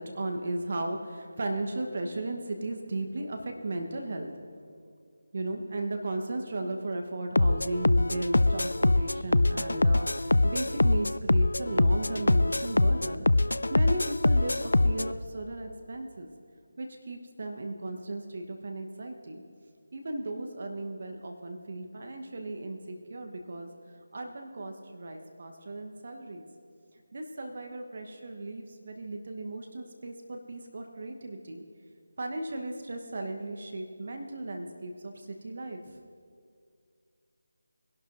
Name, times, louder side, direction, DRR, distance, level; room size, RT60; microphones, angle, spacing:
voice 1, 0.0-4.3 5.3-16.3 16.8-19.4 19.9-23.7 24.1-26.4 27.1-31.6 32.2-35.8, right 2 dB, 45° right, 4 dB, 1.1 m, -36 dB
sound 1, 7.4-15.1, left 2 dB, 70° left, 0.3 m, -24 dB
21.5 x 11.5 x 2.6 m, 2.2 s
figure-of-eight pair, 160°, 0 cm